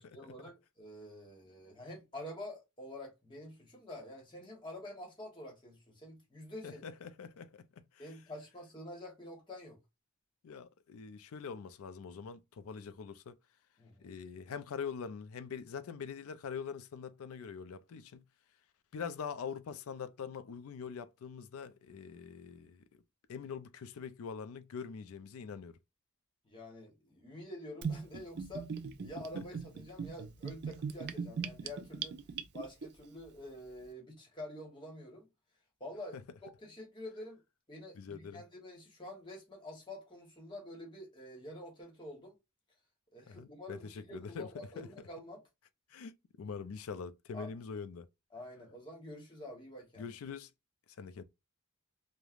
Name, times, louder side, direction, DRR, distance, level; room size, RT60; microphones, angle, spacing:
voice 1, 0.0-6.8 8.0-9.8 13.8-14.1 26.4-28.7 29.0-32.2 32.5-35.3 35.8-36.2 36.6-37.4 37.7-42.3 43.1-45.4 47.3-47.5 48.3-50.1, left 1 dB, 20° left, 1.1 m, -47 dB
voice 2, 6.6-7.7 7.9-8.0 10.4-13.4 14.0-18.2 18.9-22.8 23.3-25.8 29.3-29.4 36.1-36.2 37.9-38.4 43.3-44.9 45.9-48.1 50.0-50.5 51.0-51.2, left 6 dB, 80° left, 0.4 m, -44 dB
Gurgling / Bathtub (filling or washing), 27.8-32.9, right 6 dB, 50° right, 0.3 m, -39 dB
3.1 x 2.1 x 2.3 m
head